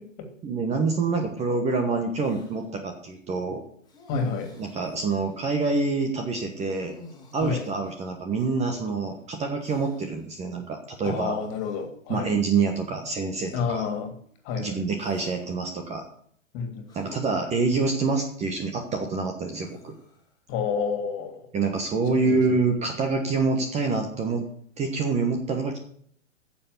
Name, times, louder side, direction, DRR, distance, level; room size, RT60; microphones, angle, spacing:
voice 1, 0.4-3.6 4.6-6.9 7.3-11.4 12.1-13.9 14.6-16.0 16.9-20.0 21.5-24.4 24.8-25.8, right 4 dB, 15° right, 4 dB, 1.3 m, -26 dB
sound 1, 2.2-2.6 3.9-5.4 6.5-8.9 9.6-10.2 11.3-11.9 12.7-12.8 14.9-15.6 16.9-17.9 19.5-20.3, left 3 dB, 10° left, 2.8 m, -48 dB
voice 2, 4.1-4.5 7.4-7.6 11.0-12.3 13.5-14.1 14.4-14.8 16.5-16.9 20.5-21.4 22.1-22.4, left 6 dB, 30° left, 5 dB, 2.9 m, -29 dB
10.0 x 7.3 x 8.2 m, 0.62 s
hypercardioid pair, 130°, 39 cm